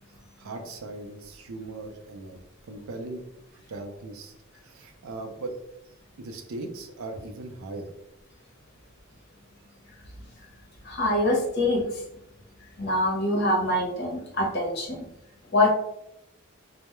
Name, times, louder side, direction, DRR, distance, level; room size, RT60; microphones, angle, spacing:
voice 1, 0.4-3.2 3.5-5.6 6.2-7.9, right 2 dB, 80° right, 4 dB, 0.4 m, -39 dB
voice 2, 10.8-12.0 12.8-15.0 15.5-15.7, left 1 dB, 50° left, -2 dB, 0.7 m, -24 dB
2.2 x 2.0 x 2.9 m, 0.82 s
head